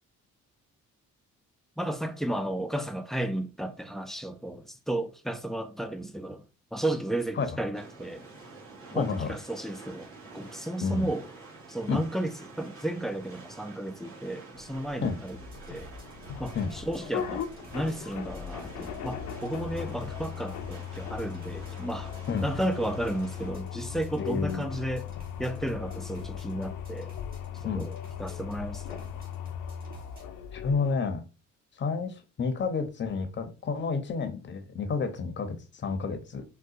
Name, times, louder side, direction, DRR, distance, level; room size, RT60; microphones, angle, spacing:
voice 1, 1.8-6.4 6.7-8.3 8.9-11.3 11.7-15.4 15.7-15.9 16.4-22.1 22.4-25.1 25.4-27.1 27.6-29.0, right 1 dB, ahead, 0.3 m, -33 dB
sound 1, 7.7-23.5, right 3 dB, 45° right, 1.5 m, -49 dB
voice 2, 8.9-9.3 10.8-11.1 11.9-12.0 15.0-15.2 16.5-16.7 22.3-22.5 24.2-24.7 27.6-27.9 30.5-31.2 31.8-36.4, left 5 dB, 40° left, 0.6 m, -30 dB
sound 2, 14.5-31.0, left 9 dB, 85° left, 0.5 m, -39 dB
sound 3, 15.3-30.3, left 2 dB, 30° right, 1.1 m, -49 dB
3.8 x 2.2 x 2.4 m
cardioid pair, 90°, 30 cm